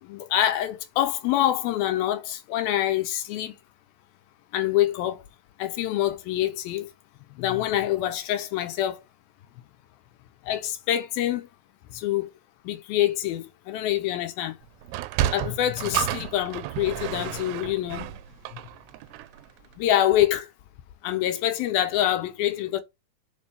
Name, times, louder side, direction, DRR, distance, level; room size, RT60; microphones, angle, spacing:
voice 1, 0.0-3.5 4.5-5.2 5.6-6.9 7.3-9.0 10.4-11.5 11.9-12.3 12.6-14.6 15.3-18.1 18.5-18.6 19.8-20.5 21.0-22.8, left 12 dB, 80° left, 2.4 m, -26 dB
Sliding door, 14.8-19.5, right 13 dB, 90° right, 2.7 m, -31 dB
5.3 x 5.2 x 5.4 m
omnidirectional pair, 4.6 m